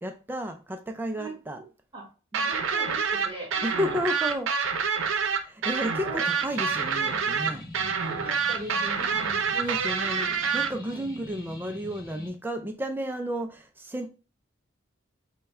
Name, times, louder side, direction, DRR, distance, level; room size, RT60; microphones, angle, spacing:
voice 1, 0.0-1.6 3.6-4.5 5.4-7.6 9.5-14.1, equal, 10° right, 0.3 m, -32 dB
voice 2, 2.3-4.0 6.0-6.2 8.0-9.5 10.8-11.1, right 1 dB, 25° right, 1.4 m, -40 dB
sound 1, 2.3-10.7, right 6 dB, 80° right, 0.6 m, -27 dB
sound 2, 6.5-12.3, left 1 dB, 20° left, 1.2 m, -44 dB
5.5 x 2.2 x 4.2 m
head